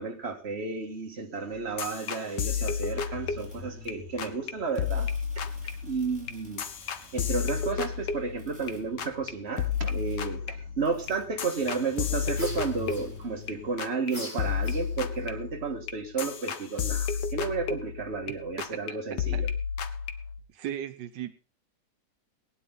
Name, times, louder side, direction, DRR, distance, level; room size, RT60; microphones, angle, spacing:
voice 1, 0.0-5.1 5.4-5.5 5.8-6.7 7.1-19.5, right 4 dB, 40° right, 2.0 m, -32 dB
sound 1, 1.5-3.9 4.2-4.5 4.8-8.7 9.0-9.3 9.6-13.5 13.8-14.1 14.4-18.3 18.6-18.9 19.2-20.4, left 7 dB, 85° left, 1.7 m, -32 dB
sound 2, 3.1-13.7, equal, 5° right, 5.4 m, -49 dB
sound 3, 12.3-13.5 14.1-15.2, left 1 dB, 25° left, 5.2 m, -43 dB
voice 2, 20.5-21.3, right 10 dB, 85° right, 1.6 m, -36 dB
19.0 x 10.0 x 3.9 m
omnidirectional pair, 1.8 m